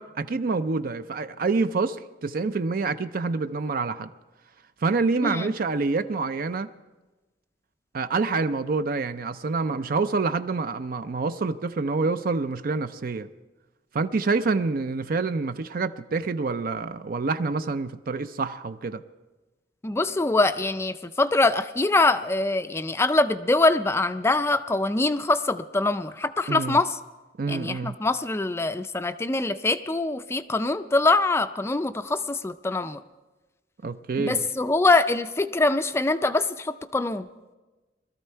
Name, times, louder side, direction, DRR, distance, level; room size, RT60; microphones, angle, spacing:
voice 1, 0.0-4.1 4.8-6.7 7.9-13.3 13.9-19.0 26.5-26.8 27.4-28.0 33.8-34.4, right 4 dB, 55° right, 0.5 m, -27 dB
voice 2, 19.8-26.9 27.5-33.0 34.2-37.3, left 2 dB, 15° left, 0.4 m, -24 dB
21.0 x 13.5 x 4.5 m
head